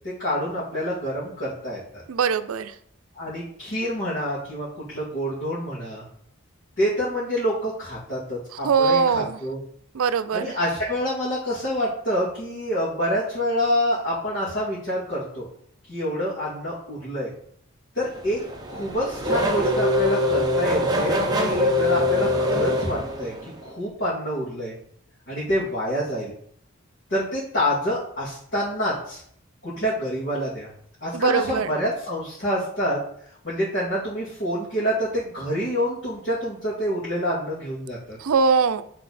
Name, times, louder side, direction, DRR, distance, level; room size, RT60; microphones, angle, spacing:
voice 1, 0.0-2.0 3.1-6.0 6.8-9.6 10.3-15.5 15.9-17.3 17.9-18.4 18.7-23.3 23.6-24.7 25.3-26.3 27.1-29.2 29.6-30.7 31.0-33.0 33.4-38.2, equal, 60° left, -9 dB, 2.3 m, -27 dB
voice 2, 2.1-2.7 8.6-9.4 9.9-10.5 31.1-31.7 38.2-38.8, right 5 dB, 85° right, 12 dB, 0.5 m, -21 dB
Race car auto racing / Accelerating revving vroom, 18.1-23.6, left 1 dB, 20° right, 0.8 m, -23 dB
8.6 x 4.0 x 4.2 m, 0.65 s
head